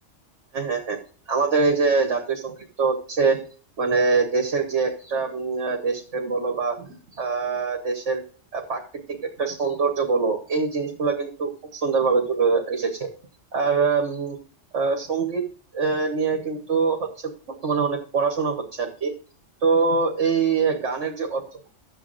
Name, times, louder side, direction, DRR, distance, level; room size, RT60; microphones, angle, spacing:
voice 1, 0.5-1.0 1.3-3.4 3.8-8.2 8.5-13.1 13.5-14.4 14.7-15.4 15.7-17.3 17.6-19.1 19.6-21.7, right 4 dB, 70° right, 1 dB, 1.7 m, -24 dB
13.5 x 8.0 x 2.6 m, 0.40 s
omnidirectional pair, 1.3 m